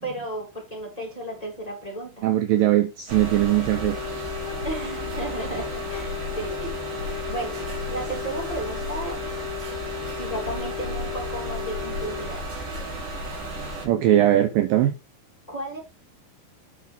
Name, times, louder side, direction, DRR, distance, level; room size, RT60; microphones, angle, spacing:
voice 1, 0.0-2.3 4.6-9.2 10.2-12.5 15.5-15.8, right 1 dB, 10° left, 2.4 m, -34 dB
voice 2, 2.2-4.3 13.8-14.9, right 13 dB, 80° right, 2.0 m, -20 dB
sound 1, 3.1-13.9, right 1 dB, 55° right, 3.9 m, -33 dB
Wind instrument woodwind instrument, 3.6-12.3, left 20 dB, 65° left, 2.0 m, -36 dB
8.8 x 5.3 x 3.6 m
omnidirectional pair, 4.7 m